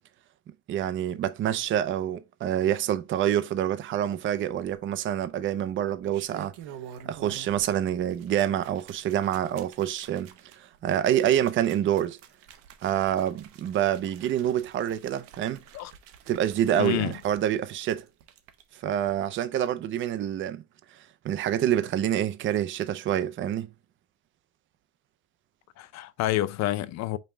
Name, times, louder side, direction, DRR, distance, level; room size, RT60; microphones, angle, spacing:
voice 1, 0.7-6.5 7.1-12.2 12.8-15.6 16.3-18.1 18.7-20.6 21.2-23.7, right 11 dB, 35° right, 0.5 m, -27 dB
sound 1, 4.4-5.0 5.9-7.7 8.0-18.6 19.0-19.1, right 9 dB, 90° right, 0.8 m, -49 dB
voice 2, 16.8-17.1 25.8-27.2, left 14 dB, 55° left, 0.5 m, -28 dB
5.3 x 2.2 x 4.3 m
cardioid pair, 125°, 33 cm